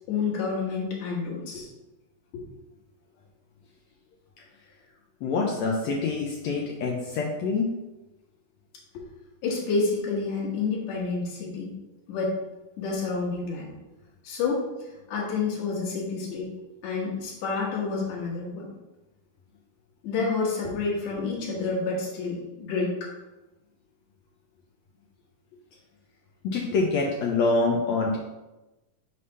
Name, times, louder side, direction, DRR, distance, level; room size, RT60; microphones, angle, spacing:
voice 1, 0.1-1.7 2.3-2.4 8.9-9.0 9.4-11.7 12.1-12.3 12.8-13.7 14.2-16.5 16.8-18.7 20.0-23.1, left 4 dB, 60° left, -5 dB, 2.5 m, -29 dB
voice 2, 5.2-7.7 26.4-28.2, left 3 dB, 80° left, -1 dB, 1.6 m, -25 dB
5.5 x 3.3 x 5.4 m, 1.0 s
omnidirectional pair, 3.8 m